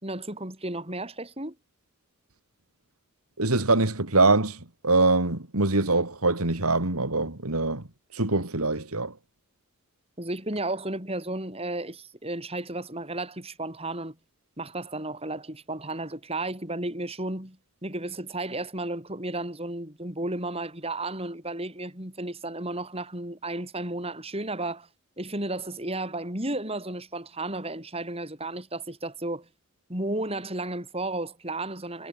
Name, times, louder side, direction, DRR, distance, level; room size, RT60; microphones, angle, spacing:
voice 1, 0.0-1.6 10.2-14.2 14.6-24.9 25.2-29.5 29.9-32.1, right 2 dB, 25° right, 5.9 m, -33 dB
voice 2, 3.4-7.8 8.1-9.1, right 3 dB, 80° right, 3.2 m, -23 dB
head